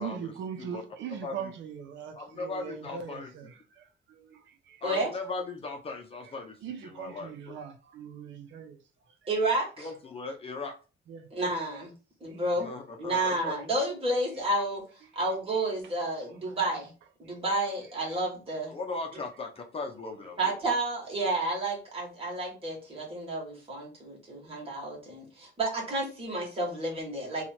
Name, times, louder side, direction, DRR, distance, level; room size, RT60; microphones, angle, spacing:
voice 1, 0.0-4.8 6.2-6.3 6.6-8.8 11.1-11.3 12.3-12.4 15.1-15.2 15.8-15.9 17.3-17.4, right 7 dB, 85° right, 0.7 m, -41 dB
voice 2, 1.1-1.5 2.1-3.3 4.8-6.6 6.8-7.3 9.8-10.7 12.6-13.5 18.7-20.5, left 3 dB, 30° left, 0.6 m, -38 dB
voice 3, 9.3-9.9 11.3-11.9 12.2-12.7 13.0-14.8 15.1-16.9 17.2-18.7 20.4-27.4, right 2 dB, 30° right, 1.6 m, -30 dB
2.9 x 2.4 x 4.2 m
cardioid pair, 155°, 19 cm